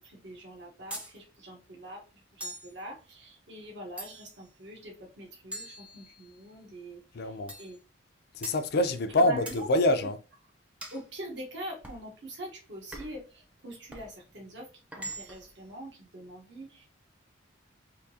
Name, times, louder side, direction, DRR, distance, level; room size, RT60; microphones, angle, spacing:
voice 1, 0.0-7.8 9.1-9.7 10.9-16.9, right 1 dB, 65° right, 1.1 m, -44 dB
sound 1, 0.9-1.2 2.4-2.8 4.0-4.4 5.5-6.4 7.5-7.8 8.4-8.7 9.5-9.7 10.8-11.1 11.8-12.1 12.9-13.3 13.9-14.1 14.9-15.5, right 1 dB, 5° right, 0.6 m, -42 dB
voice 2, 7.1-7.5 8.3-10.2, left 1 dB, 55° left, 0.4 m, -26 dB
3.6 x 2.7 x 2.7 m
head